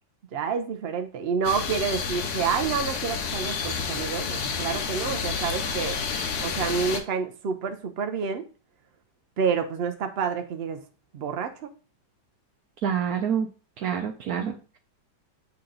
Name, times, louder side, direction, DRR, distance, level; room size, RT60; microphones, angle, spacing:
voice 1, 0.3-6.0 6.4-8.5 9.4-10.8 11.1-11.7, right 6 dB, 85° right, 6 dB, 0.5 m, -28 dB
sound 1, 1.4-7.0, left 5 dB, 65° left, 1.3 m, -30 dB
voice 2, 12.8-13.5 13.8-14.8, right 8 dB, 70° right, 4 dB, 1.0 m, -27 dB
8.5 x 2.9 x 3.8 m, 0.35 s
omnidirectional pair, 1.9 m